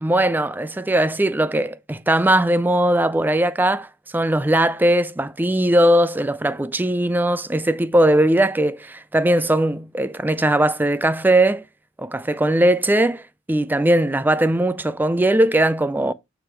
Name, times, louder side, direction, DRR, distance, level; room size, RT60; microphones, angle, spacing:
voice 1, 0.0-3.9 4.1-11.6 12.0-13.2 13.5-16.1, right 1 dB, 10° right, 0.3 m, -19 dB
6.8 x 3.6 x 4.4 m
head